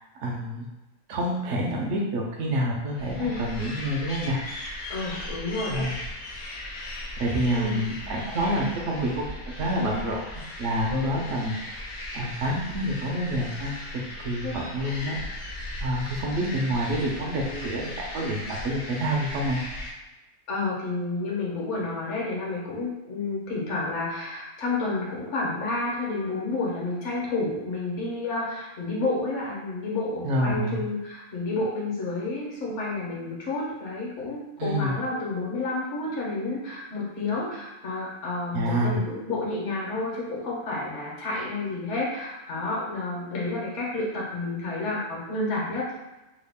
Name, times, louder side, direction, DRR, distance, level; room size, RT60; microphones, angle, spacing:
voice 1, 0.2-0.7 1.1-4.4 5.7-5.9 7.2-9.3 9.6-10.2 10.6-11.8 12.1-13.7 14.2-15.2 15.8-19.6 30.2-30.8 34.6-34.9 38.5-39.0, right 1 dB, 70° right, -2 dB, 0.9 m, -27 dB
sound 1, 2.9-19.9, left 1 dB, 75° left, 0.3 m, -37 dB
voice 2, 4.9-5.9 7.5-7.8 10.9-11.2 14.4-14.5 20.5-45.9, left 2 dB, 60° left, -4 dB, 1.2 m, -30 dB
3.1 x 2.3 x 3.5 m, 1.1 s
omnidirectional pair, 1.4 m